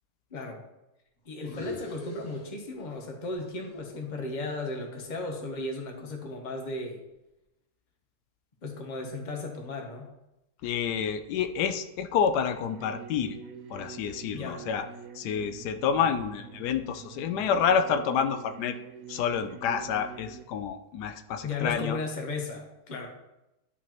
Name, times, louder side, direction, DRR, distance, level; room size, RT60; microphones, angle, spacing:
voice 1, 0.3-0.6 1.2-7.0 8.6-10.1 14.3-14.6 21.4-23.1, left 3 dB, 35° left, 2 dB, 1.0 m, -35 dB
sound 1, 1.3-3.1 3.4-5.6, left 1 dB, 65° left, 1.9 m, -43 dB
voice 2, 10.6-13.4 13.7-14.9 15.1-18.8 19.1-22.0, left 7 dB, 90° left, 8 dB, 1.2 m, -28 dB
sound 2, 12.5-20.4, right 6 dB, 70° right, 1.0 m, -46 dB
11.0 x 4.2 x 3.0 m, 0.94 s
omnidirectional pair, 1.7 m